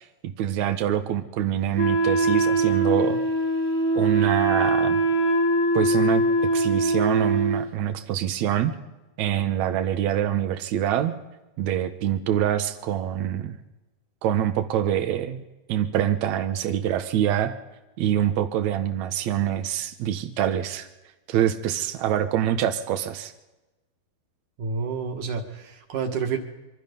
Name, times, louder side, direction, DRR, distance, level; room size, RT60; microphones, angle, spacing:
voice 1, 0.0-3.2 3.9-5.0 5.7-6.2 6.5-8.7 9.2-11.1 11.6-13.6 14.2-15.4 15.7-17.5 18.0-20.9 21.3-23.3, right 10 dB, 75° right, 6 dB, 1.6 m, -25 dB
Wind instrument woodwind instrument, 1.8-7.7, right 2 dB, 40° left, 1.2 m, -22 dB
voice 2, 24.6-26.4, right 5 dB, 55° right, 4 dB, 2.9 m, -29 dB
25.0 x 24.0 x 5.4 m, 1.1 s
omnidirectional pair, 4.7 m